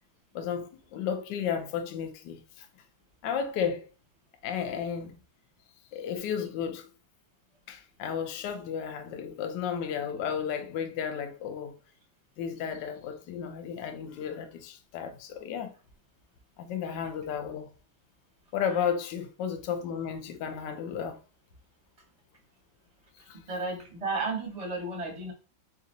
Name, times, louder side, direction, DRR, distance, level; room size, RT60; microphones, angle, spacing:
voice 1, 0.3-2.7 3.2-3.9 4.4-5.2 5.9-6.9 7.7-11.7 12.4-15.7 16.6-17.7 18.5-21.2 23.3-23.4, left 7 dB, 70° left, 1.2 m, -33 dB
voice 2, 23.3-25.3, right 3 dB, 25° right, 0.8 m, -33 dB
4.1 x 3.8 x 2.6 m
omnidirectional pair, 2.1 m